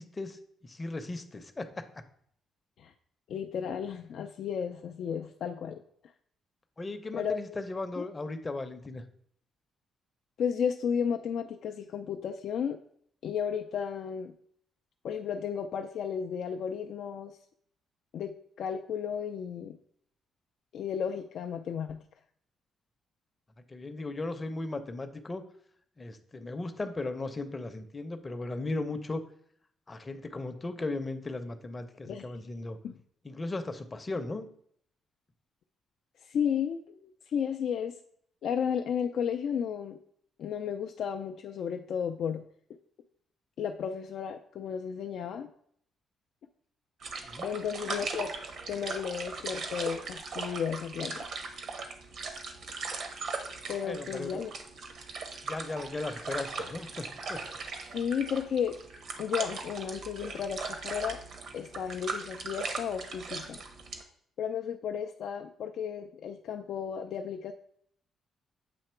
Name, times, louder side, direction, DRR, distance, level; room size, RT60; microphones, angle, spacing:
voice 1, 0.0-1.9 6.8-9.0 23.7-25.4 26.0-29.2 29.9-32.8 33.2-34.5 47.2-47.5 53.9-54.4 55.4-57.4, left 2 dB, 25° left, 8 dB, 0.6 m, -37 dB
voice 2, 3.3-5.8 7.1-7.4 8.0-8.1 10.4-12.8 13.2-14.3 15.0-17.4 18.1-19.8 20.7-22.0 32.0-32.2 32.8-32.9 36.3-37.9 38.4-40.0 40.4-42.4 43.6-45.5 47.4-48.3 48.7-51.3 53.7-54.5 57.9-58.8 59.2-61.2 61.5-63.6 64.4-67.5, left 7 dB, 70° left, 5 dB, 0.3 m, -33 dB
sound 1, 47.0-64.0, right 4 dB, 65° right, 0.8 m, -39 dB
7.7 x 2.9 x 4.4 m, 0.65 s
cardioid pair, 90°, 0 cm